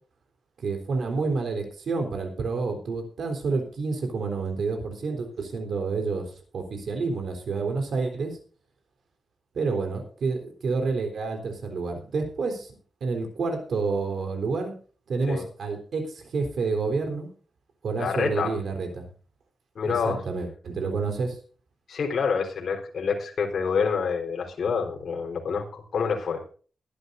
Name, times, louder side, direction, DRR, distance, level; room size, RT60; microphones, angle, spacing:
voice 1, 0.6-8.4 9.5-14.7 15.1-17.3 17.8-19.1 19.8-21.4, right 4 dB, 65° right, 4 dB, 3.8 m, -29 dB
voice 2, 18.0-18.5 19.8-20.2 21.9-26.4, left 5 dB, 60° left, 2 dB, 4.0 m, -27 dB
22.5 x 11.5 x 2.6 m, 0.40 s
wide cardioid pair, 175°, 0 cm